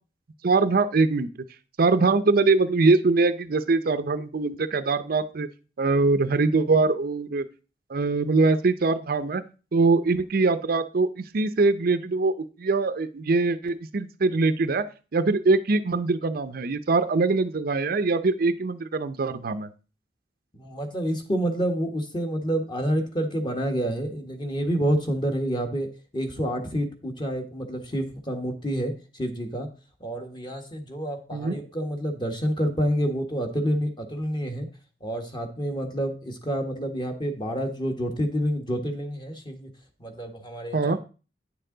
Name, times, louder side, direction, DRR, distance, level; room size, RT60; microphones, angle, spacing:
voice 1, 0.4-1.3 1.8-5.5 5.8-7.4 7.9-9.4 9.7-12.3 12.6-14.9 15.1-19.7 31.3-31.5 40.7-41.0, right 3 dB, 55° right, 11 dB, 0.5 m, -22 dB
voice 2, 20.5-25.9 26.1-29.7 30.0-34.7 35.0-39.7 40.0-41.0, equal, 25° left, 4 dB, 1.4 m, -28 dB
9.6 x 6.7 x 3.8 m, 0.34 s
head